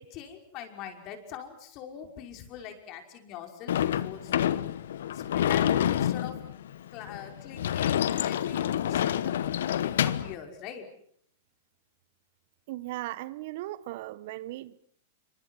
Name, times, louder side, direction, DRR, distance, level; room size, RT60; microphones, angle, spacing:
voice 1, 0.0-4.3 5.1-6.4 6.9-10.9, left 9 dB, 45° left, 5.4 m, -43 dB
Sliding door / Slam, 3.7-10.3, left 10 dB, 70° left, 1.2 m, -28 dB
voice 2, 12.7-14.8, right 16 dB, 55° right, 1.0 m, -37 dB
28.5 x 26.0 x 6.3 m
hypercardioid pair, 105°, 0 cm